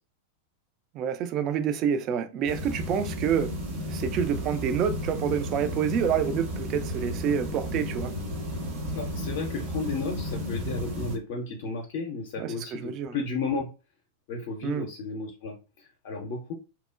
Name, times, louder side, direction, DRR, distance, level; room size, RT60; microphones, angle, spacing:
voice 1, 0.9-3.5 3.9-8.1 12.4-13.2 14.6-14.9, right 8 dB, 35° right, 0.3 m, -28 dB
sound 1, 2.5-11.2, equal, 55° right, 0.8 m, -33 dB
voice 2, 8.9-13.7 14.3-16.5, left 4 dB, 50° left, 0.5 m, -33 dB
2.9 x 2.1 x 2.3 m
figure-of-eight pair, 90°, 0 cm